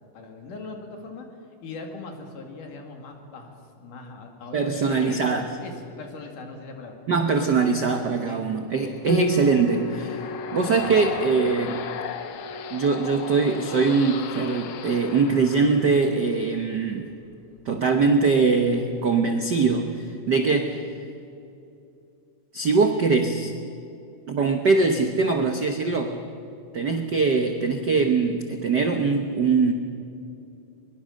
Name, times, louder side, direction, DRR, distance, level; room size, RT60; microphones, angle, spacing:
voice 1, 0.1-1.3 1.6-5.2 5.6-7.0 7.4-7.5 8.1-8.4 8.9-9.0, left 3 dB, 80° left, 3 dB, 3.9 m, -40 dB
voice 2, 4.5-5.5 7.1-10.2 10.5-11.8 12.7-17.1 17.6-20.9 22.5-23.5 24.3-26.2 26.7-29.7, right 4 dB, 75° right, 5 dB, 0.9 m, -22 dB
sound 1, 8.9-16.4, left 8 dB, 65° left, 1.8 m, -37 dB
Piano, 9.1-18.4, left 2 dB, 40° left, 1.2 m, -36 dB
23.0 x 22.0 x 6.5 m, 2.7 s
omnidirectional pair, 3.6 m